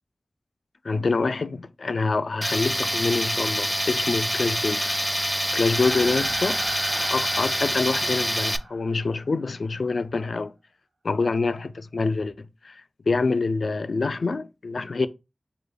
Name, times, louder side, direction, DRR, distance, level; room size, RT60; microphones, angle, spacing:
voice 1, 0.8-6.6 6.9-10.5 11.0-12.3 12.6-12.8 13.1-15.1, left 3 dB, 75° left, 0.3 m, -26 dB
Tools, 2.4-8.6, equal, ahead, 0.3 m, -26 dB
sound 1, 5.6-9.2, right 2 dB, 90° right, 0.8 m, -37 dB
4.7 x 3.1 x 2.3 m
wide cardioid pair, 60°, 0 cm